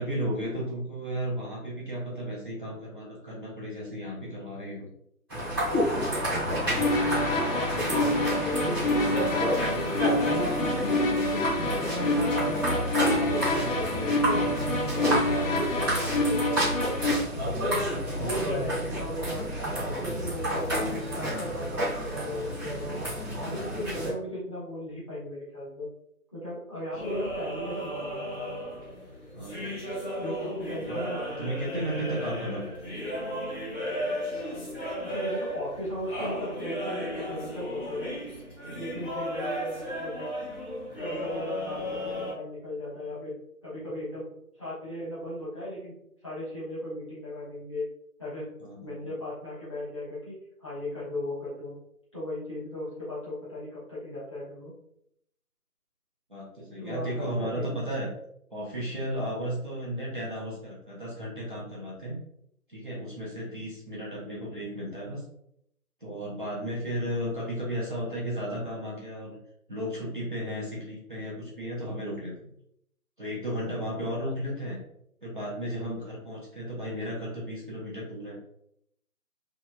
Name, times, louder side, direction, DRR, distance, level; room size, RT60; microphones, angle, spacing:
voice 1, 0.0-4.9 29.3-30.0 30.8-31.0 31.4-32.9 38.7-39.1 48.6-48.9 56.3-58.1 58.5-62.2 62.7-65.2 66.0-69.4 69.7-72.3 73.2-74.8 75.2-78.4, equal, 35° right, -7 dB, 0.8 m, -34 dB
sound 1, 5.3-24.1, equal, 15° right, 1.0 m, -29 dB
sound 2, 6.7-17.1, left 2 dB, 60° left, 0.7 m, -28 dB
voice 2, 7.3-10.2 10.7-12.6 13.0-14.5 14.9-17.0 17.4-17.9 18.2-20.8 21.1-23.0 23.4-25.9 26.3-28.4 30.2-31.5 35.0-38.2 38.7-40.3 41.0-43.3 43.6-44.3 44.6-45.9 46.2-47.9 48.2-48.5 48.8-51.8 52.1-54.7 56.8-57.8, left 1 dB, 20° left, -11 dB, 1.0 m, -36 dB
sound 3, 26.9-42.3, equal, 35° left, 1.5 m, -35 dB
2.9 x 2.8 x 2.2 m, 0.75 s
figure-of-eight pair, 170°, 45 cm